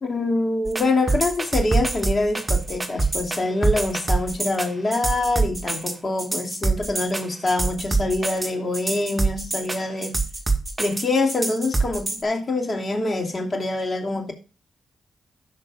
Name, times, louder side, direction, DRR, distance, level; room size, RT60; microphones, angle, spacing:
voice 1, 0.0-10.2 10.8-14.3, left 2 dB, 45° left, 2.7 m, -25 dB
sound 1, 0.7-12.2, right 3 dB, 30° right, 1.9 m, -24 dB
17.0 x 6.7 x 2.5 m
supercardioid pair, 45°, 0 cm